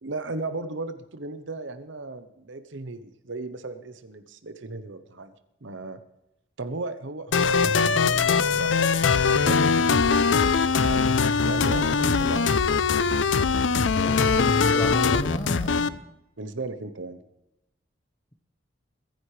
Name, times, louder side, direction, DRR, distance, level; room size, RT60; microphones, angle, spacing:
voice 1, 0.0-5.3 5.6-6.0 6.6-9.0 9.4-10.6 10.8-11.2 11.4-12.5 16.4-17.2, right 3 dB, 80° right, 10 dB, 0.9 m, -36 dB
sound 1, 7.3-15.9, left 5 dB, 80° left, 0.6 m, -21 dB
voice 2, 14.0-16.0, equal, 20° left, 4 dB, 1.1 m, -32 dB
22.5 x 10.5 x 3.3 m, 0.91 s
head